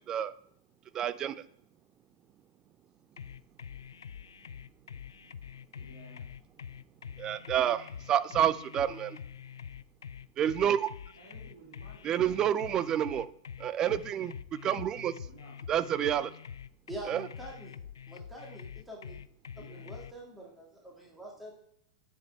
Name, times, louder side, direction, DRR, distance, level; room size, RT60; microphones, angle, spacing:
voice 1, 0.9-1.4 7.2-9.2 10.4-10.9 12.0-13.3 13.6-14.3 14.6-15.1 15.7-16.3 17.1-17.3, right 10 dB, 30° right, 15 dB, 0.5 m, -29 dB
sound 1, 3.2-20.1, left 7 dB, 75° left, 0.3 m, -45 dB
voice 2, 5.7-6.3 11.1-12.1 15.2-15.5 19.6-19.9, right 2 dB, 65° right, -5 dB, 3.5 m, -54 dB
voice 3, 16.9-17.7 18.1-19.2 19.7-21.5, right 1 dB, 5° right, -2 dB, 2.1 m, -45 dB
9.4 x 5.6 x 4.5 m, 0.69 s
figure-of-eight pair, 100°, 2 cm